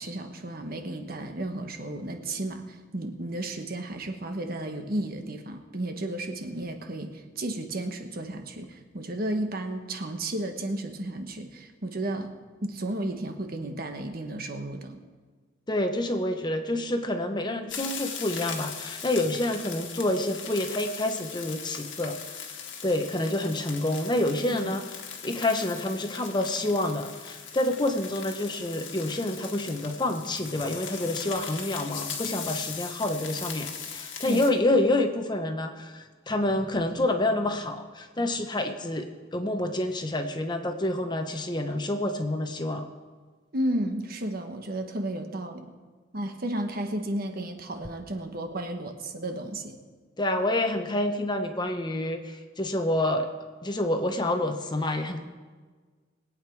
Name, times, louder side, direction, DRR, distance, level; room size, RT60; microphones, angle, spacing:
voice 1, 0.0-12.3 12.6-15.0 24.6-24.8 34.2-34.5 43.5-45.7 46.1-49.8, right 1 dB, 50° right, 5 dB, 1.2 m, -33 dB
voice 2, 15.7-22.2 22.8-24.9 25.2-42.9 50.2-53.3 53.6-55.2, left 1 dB, 20° left, 6 dB, 0.9 m, -28 dB
sound 1, 17.7-34.5, left 7 dB, 70° left, 1.7 m, -39 dB
21.0 x 8.7 x 4.7 m, 1.5 s
head